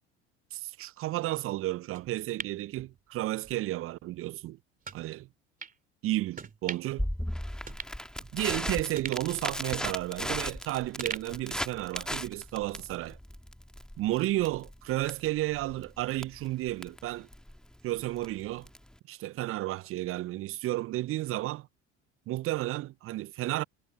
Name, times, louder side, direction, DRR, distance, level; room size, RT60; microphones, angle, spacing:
voice 1, 0.5-4.6 4.9-5.3 6.0-7.1 8.3-13.2 14.0-17.3 17.8-18.7 19.1-21.7 22.3-23.6, right 16 dB, 35° right, 0.5 m, -32 dB
sound 1, 1.9-3.6 3.9-4.0 4.8-5.0 5.6-5.8 6.3-7.0 7.3-7.4 7.7-8.6 9.0-10.6 11.0-12.2 12.5-12.6, right 5 dB, 20° right, 2.5 m, -42 dB
Crackle, 7.0-19.0, equal, ahead, 1.8 m, -37 dB
figure-of-eight pair, 65°, 37 cm